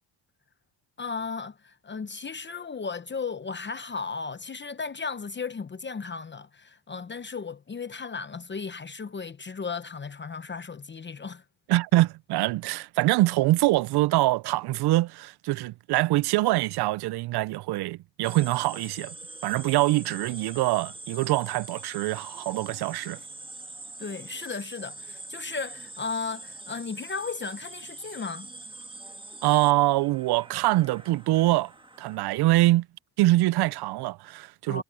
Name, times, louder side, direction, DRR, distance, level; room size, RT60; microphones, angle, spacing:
voice 1, 1.0-11.4 24.0-28.5 34.7-34.8, left 5 dB, 25° left, 0.9 m, -35 dB
voice 2, 11.7-19.2 19.4-23.2 29.4-31.7 32.0-32.9 33.2-34.8, right 18 dB, 60° right, 0.5 m, -24 dB
sound 1, 18.2-32.2, right 2 dB, 10° right, 1.9 m, -44 dB
cardioid pair, 105°, 45 cm